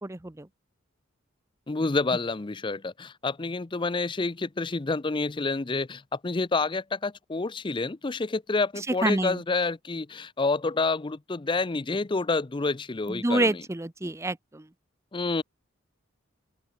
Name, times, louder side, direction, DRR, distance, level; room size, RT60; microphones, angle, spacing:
voice 1, 0.0-0.5 9.0-9.4 13.1-14.6, right 2 dB, 15° right, 0.6 m, -27 dB
voice 2, 1.7-13.6 15.1-15.4, left 3 dB, 25° left, 0.5 m, -28 dB
open air
head